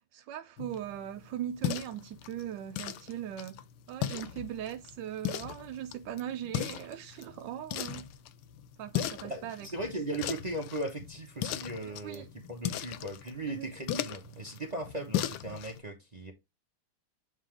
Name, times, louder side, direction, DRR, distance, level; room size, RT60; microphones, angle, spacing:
voice 1, 0.1-8.1 8.8-9.9 11.8-12.3 13.5-13.7, right 11 dB, 75° right, 1.0 m, -40 dB
sound 1, 0.6-15.8, left 12 dB, 85° left, 1.5 m, -38 dB
voice 2, 9.2-16.3, right 1 dB, 45° right, 0.5 m, -38 dB
8.0 x 3.7 x 3.2 m
omnidirectional pair, 2.3 m